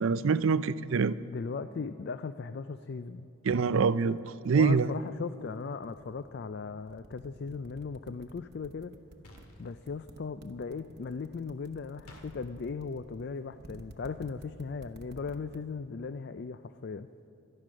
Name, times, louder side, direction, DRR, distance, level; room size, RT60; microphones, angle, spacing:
voice 1, 0.0-1.2 3.5-4.2 4.4-4.9, right 5 dB, 65° right, 16 dB, 0.4 m, -25 dB
voice 2, 1.3-3.3 4.5-8.9 9.6-17.1, left 5 dB, 50° left, 12 dB, 0.3 m, -38 dB
sound 1, 4.2-6.4 6.8-9.4 9.8-15.6, right 1 dB, 50° right, 0.9 m, -51 dB
sound 2, 9.2-9.8 12.1-12.3, left 1 dB, 90° left, 2.2 m, -52 dB
18.0 x 12.5 x 6.3 m, 2.8 s
head